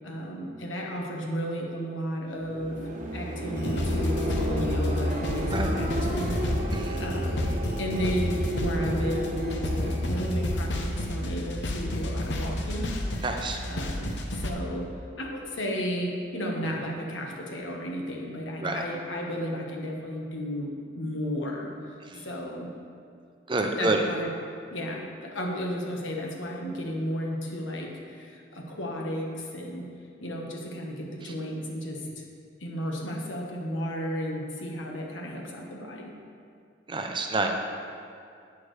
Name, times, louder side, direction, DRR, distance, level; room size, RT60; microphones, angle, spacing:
voice 1, 0.0-2.8 3.1-6.3 7.0-7.5 7.8-12.9 13.7-14.9 15.2-22.7 23.7-24.3 24.7-29.9 30.2-32.2 32.6-36.1, equal, 85° left, 0 dB, 1.4 m, -33 dB
sound 1, 2.4-11.4, right 1 dB, 40° right, 0.9 m, -33 dB
sound 2, 3.6-14.5, left 1 dB, 65° left, 0.9 m, -30 dB
voice 2, 6.7-7.0 13.2-13.6 18.6-18.8 22.0-22.3 23.5-24.0 36.9-37.5, right 2 dB, 25° right, 3 dB, 0.6 m, -28 dB
11.0 x 8.5 x 3.4 m, 2.3 s
head